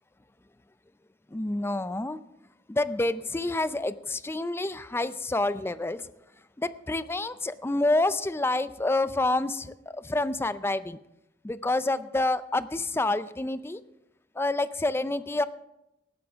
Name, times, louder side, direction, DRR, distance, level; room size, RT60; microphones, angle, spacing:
voice 1, 1.3-2.2 2.7-6.1 6.6-11.0 11.4-13.8 14.4-15.4, left 2 dB, 15° left, 14 dB, 0.4 m, -28 dB
18.5 x 13.5 x 3.5 m, 0.88 s
head